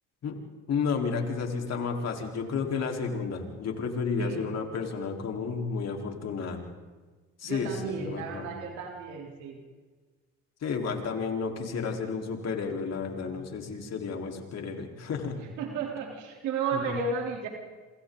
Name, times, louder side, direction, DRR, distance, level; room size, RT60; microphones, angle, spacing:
voice 1, 0.7-6.6 7.4-8.5 10.6-15.5 16.7-17.0, left 5 dB, 60° left, 2 dB, 4.3 m, -32 dB
voice 2, 7.4-9.6 15.6-17.5, right 5 dB, 80° right, 1 dB, 3.8 m, -33 dB
27.5 x 27.0 x 4.0 m, 1.4 s
supercardioid pair, 70°, 29 cm